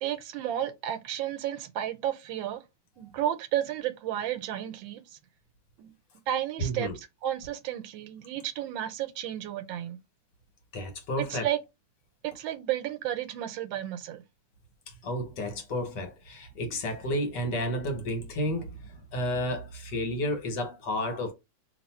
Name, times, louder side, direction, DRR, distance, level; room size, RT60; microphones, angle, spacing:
voice 1, 0.0-2.6 3.0-5.2 5.8-5.9 6.3-6.9 7.2-10.0 11.2-11.6 12.2-14.2, right 11 dB, 85° right, 1.4 m, -32 dB
voice 2, 6.6-6.9 10.7-11.5 14.9-21.3, equal, 65° left, 1.7 m, -31 dB
2.9 x 2.8 x 4.2 m
omnidirectional pair, 2.1 m